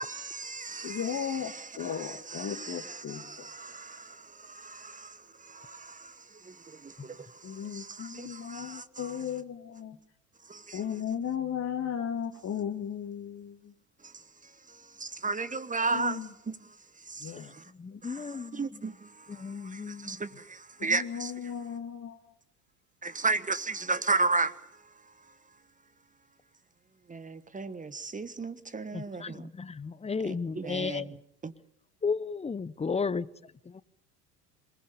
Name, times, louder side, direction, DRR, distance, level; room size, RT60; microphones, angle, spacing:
voice 1, 0.0-9.3 10.4-10.8 14.0-17.7 18.0-21.5 23.0-25.3 27.1-29.5 30.2-31.2 31.4-31.5, right 3 dB, 15° right, 1.4 m, -35 dB
voice 2, 0.8-3.5 7.4-10.0 10.7-13.7 15.9-16.3 17.2-17.5 17.9-18.0 20.8-22.3, left 8 dB, 35° left, 2.3 m, -36 dB
voice 3, 17.7-18.8 19.3-20.2 28.9-31.2 32.0-33.3 33.6-33.8, left 5 dB, 15° left, 0.9 m, -34 dB
27.0 x 20.0 x 6.9 m
hypercardioid pair, 75°, 46 cm